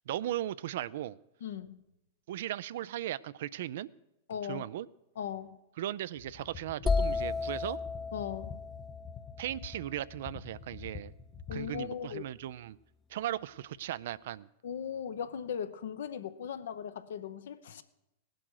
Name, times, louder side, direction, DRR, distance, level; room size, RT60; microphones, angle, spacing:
voice 1, 0.1-1.2 2.3-3.9 4.5-4.9 5.8-7.8 9.4-11.1 11.5-12.8 13.1-14.5, right 13 dB, 65° right, 0.4 m, -37 dB
voice 2, 1.4-1.8 4.3-4.6 5.2-5.6 8.1-8.6 11.5-12.2 14.6-17.8, left 8 dB, 70° left, 0.8 m, -38 dB
sound 1, 6.2-11.8, left 7 dB, 35° left, 1.2 m, -48 dB
sound 2, 6.9-10.6, left 4 dB, 15° left, 0.3 m, -34 dB
18.5 x 7.8 x 4.7 m
hypercardioid pair, 100°, 0 cm